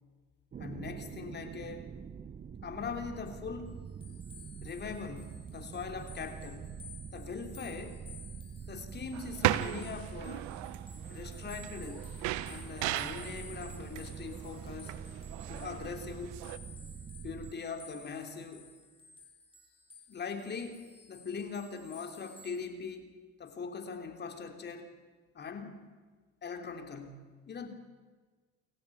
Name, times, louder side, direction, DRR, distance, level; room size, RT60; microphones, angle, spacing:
sound 1, 0.5-17.5, right 7 dB, 25° right, 0.9 m, -45 dB
voice 1, 0.6-1.9 2.6-3.9 4.6-6.8 7.1-8.0 8.7-10.5 11.1-12.1 12.5-15.0 15.5-16.4 17.2-18.7 20.1-23.1 23.4-24.9 25.3-25.9 26.4-27.7, left 5 dB, 35° left, 6 dB, 3.4 m, -41 dB
sound 2, 3.7-22.7, left 3 dB, 15° left, 7.4 m, -54 dB
sound 3, 9.1-16.6, right 15 dB, 75° right, 1.2 m, -37 dB
28.0 x 14.5 x 8.7 m, 1.4 s
supercardioid pair, 95°, 29 cm